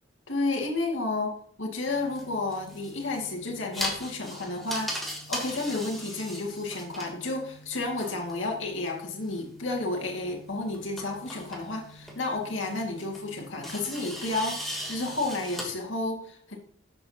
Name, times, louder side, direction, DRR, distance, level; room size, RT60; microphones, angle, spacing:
voice 1, 0.3-4.9 5.3-16.6, left 2 dB, 70° left, 0 dB, 2.2 m, -31 dB
sound 1, 1.8-15.6, equal, ahead, 3.0 m, -40 dB
12.5 x 7.8 x 2.9 m, 0.63 s
head